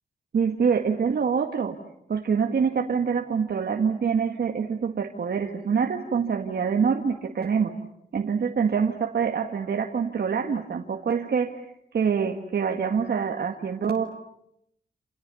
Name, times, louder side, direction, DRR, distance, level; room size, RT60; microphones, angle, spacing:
voice 1, 0.3-1.8 2.1-7.7 8.1-11.7 11.9-14.0, right 6 dB, 65° right, 3 dB, 1.9 m, -25 dB
29.0 x 28.5 x 7.1 m, 0.76 s
wide cardioid pair, 100°, 17 cm